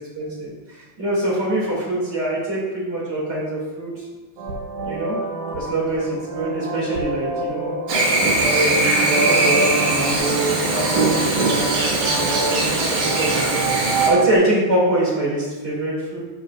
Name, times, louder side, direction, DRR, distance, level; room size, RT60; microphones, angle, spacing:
voice 1, 0.0-4.0 4.8-5.2 5.5-7.7 8.4-16.2, right 1 dB, 25° right, -6 dB, 1.6 m, -24 dB
sound 1, 4.4-14.4, right 3 dB, 90° right, 1.7 m, -28 dB
Chirp tweet / Buzz, 7.9-14.1, right 2 dB, 55° right, 2.6 m, -20 dB
13.5 x 5.5 x 2.4 m, 1.2 s
omnidirectional pair, 4.7 m